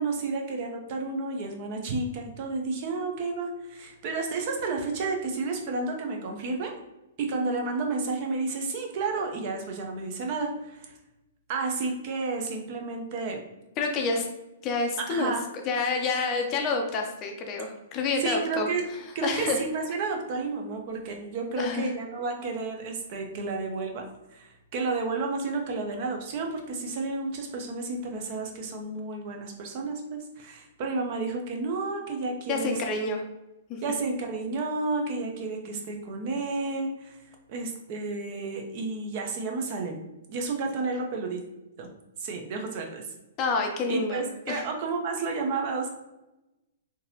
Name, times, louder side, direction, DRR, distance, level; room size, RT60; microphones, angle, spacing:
voice 1, 0.0-6.7 7.2-10.9 11.5-13.4 15.1-15.4 18.2-18.8 19.1-24.0 24.3-32.8 33.8-37.2 37.5-40.0 40.3-41.4 41.8-41.9 42.2-43.1 43.9-45.9, right 3 dB, 40° right, 2 dB, 0.7 m, -31 dB
voice 2, 13.8-14.3 14.6-15.3 15.7-18.7 19.2-19.6 21.6-21.9 32.5-33.2 33.7-33.8 43.4-44.6, left 3 dB, 25° left, 3 dB, 0.5 m, -28 dB
3.7 x 2.8 x 2.8 m, 0.96 s
hypercardioid pair, 155°, 0 cm